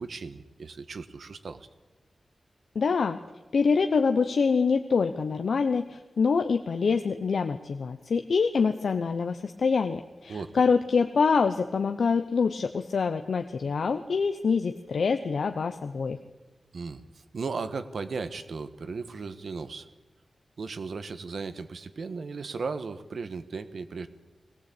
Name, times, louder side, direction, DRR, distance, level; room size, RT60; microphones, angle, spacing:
voice 1, 0.0-1.7 10.3-10.6 16.7-17.0 17.3-19.9 20.6-24.1, right 4 dB, 75° right, 11 dB, 1.3 m, -36 dB
voice 2, 2.7-3.2 3.5-16.2, left 5 dB, 75° left, 7 dB, 0.9 m, -25 dB
21.5 x 18.0 x 8.6 m, 1.2 s
wide cardioid pair, 100°, 0 cm